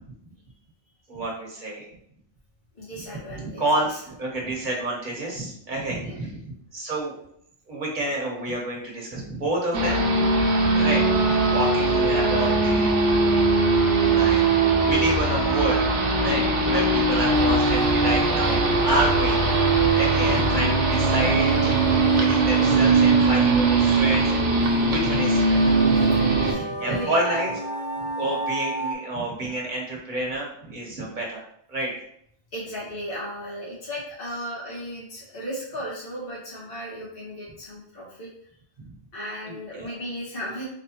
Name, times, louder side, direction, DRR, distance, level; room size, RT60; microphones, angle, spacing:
voice 1, 1.1-1.9 3.3-7.1 7.7-10.0 10.7-12.9 14.0-14.4 14.8-15.8 16.1-19.4 19.9-25.8 26.4-27.5 28.1-31.4 31.7-31.9 38.8-38.9 39.4-39.9, right 1 dB, 45° right, -2 dB, 1.1 m, -29 dB
voice 2, 2.8-3.9 6.0-6.2 14.6-14.8 25.9-27.4 32.5-38.3 39.1-40.6, equal, 50° left, -9 dB, 1.9 m, -35 dB
sound 1, 9.7-26.5, right 3 dB, 80° right, 1.0 m, -20 dB
sound 2, 17.3-28.9, equal, 25° left, 0.6 m, -33 dB
4.0 x 3.2 x 2.9 m, 0.69 s
omnidirectional pair, 1.2 m